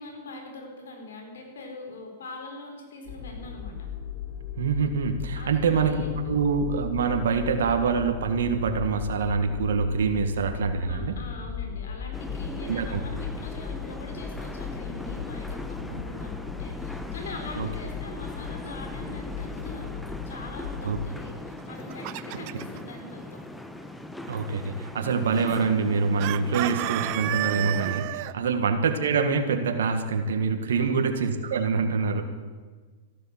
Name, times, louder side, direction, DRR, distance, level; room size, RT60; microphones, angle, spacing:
voice 1, 0.0-3.8 5.3-6.4 10.9-23.4 26.4-26.6 28.4-28.7 30.7-31.1, left 2 dB, 80° left, 3 dB, 4.3 m, -42 dB
sound 1, 3.0-21.2, left 7 dB, 50° left, 2.5 m, -37 dB
voice 2, 4.6-5.9 6.3-11.2 12.6-13.0 15.9-16.0 17.6-17.7 20.8-21.0 24.3-32.2, right 5 dB, 80° right, 5 dB, 1.7 m, -25 dB
sound 2, 12.1-28.0, left 1 dB, 5° left, 1.1 m, -40 dB
Chicken rooster, 21.6-22.8 26.2-28.3, right 18 dB, 50° right, 0.6 m, -31 dB
14.0 x 12.0 x 7.4 m, 1.4 s
hypercardioid pair, 120°, 0 cm